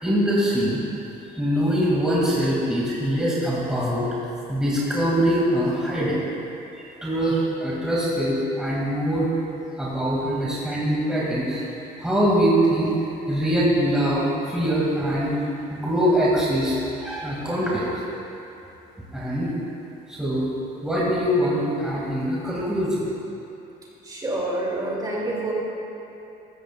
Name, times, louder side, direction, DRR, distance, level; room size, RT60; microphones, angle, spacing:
voice 1, 0.0-0.8 1.4-4.1 4.5-6.2 6.8-9.3 9.8-11.6 12.0-12.9 13.3-15.3 15.7-18.0 19.1-19.5 20.1-20.5 20.8-23.0, equal, 5° right, -7 dB, 2.3 m, -23 dB
voice 2, 24.0-25.5, right 1 dB, 20° right, -4 dB, 2.7 m, -27 dB
14.5 x 13.5 x 2.4 m, 2.9 s
cardioid pair, 110°, 17 cm